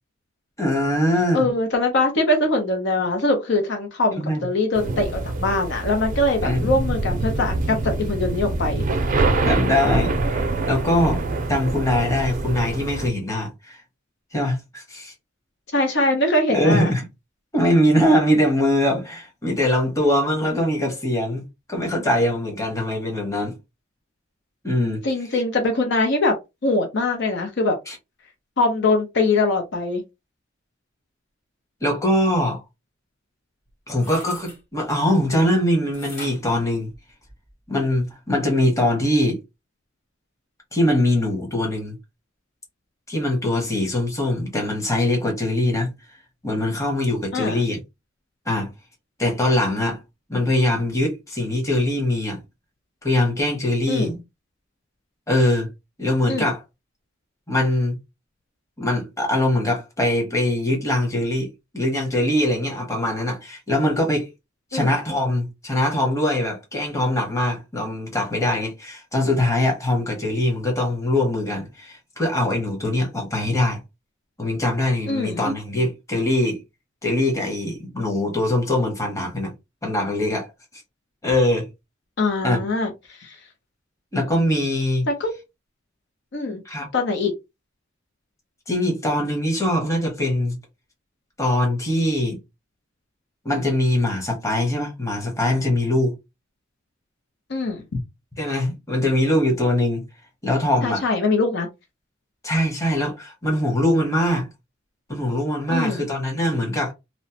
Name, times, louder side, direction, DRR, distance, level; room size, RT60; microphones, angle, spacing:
voice 1, 0.6-1.5 4.1-4.5 6.4-6.9 9.5-11.2 11.5-13.8 14.3-15.1 16.5-17.0 17.5-21.4 21.7-23.6 24.6-25.0 25.3-25.4 27.9-28.0 31.8-32.6 33.9-36.9 37.7-39.4 40.7-42.0 43.1-45.9 46.4-47.8 48.5-48.7 49.2-50.0 50.3-52.4 53.0-54.2 55.3-55.7 56.0-56.6 57.5-57.9 58.8-61.5 61.7-64.3 64.7-73.8 74.4-76.6 77.0-79.5 79.8-80.5 81.2-81.7 82.4-82.6 84.1-85.1 86.6-86.9 88.7-90.6 91.4-92.4 93.4-96.1 98.4-100.0 100.4-101.0 102.4-104.5 105.1-106.9, left 1 dB, 15° left, 0.9 m, -22 dB
voice 2, 1.3-8.8 15.7-16.9 25.0-26.4 26.6-27.8 28.6-30.0 47.3-47.6 53.9-54.1 56.3-56.5 64.7-64.9 75.1-75.4 82.2-83.4 85.1-85.3 86.3-86.6 86.9-87.3 97.5-97.8 100.8-101.7 105.7-106.0, left 2 dB, 65° left, 0.7 m, -22 dB
sound 1, 4.7-13.1, right 2 dB, 45° right, 0.5 m, -25 dB
sound 2, 33.6-34.6 35.9-37.5 38.0-38.1, left 2 dB, 40° left, 1.8 m, -42 dB
2.9 x 2.0 x 2.8 m
head